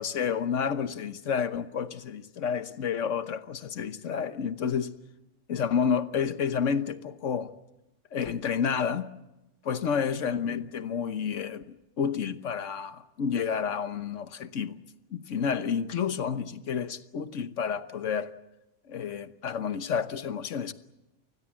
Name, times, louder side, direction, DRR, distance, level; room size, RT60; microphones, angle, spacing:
voice 1, 0.0-4.9 5.5-7.5 8.1-9.1 9.6-14.8 15.1-18.3 18.9-20.7, left 7 dB, 80° left, 1.4 m, -30 dB
28.0 x 20.0 x 7.5 m
omnidirectional pair, 1.3 m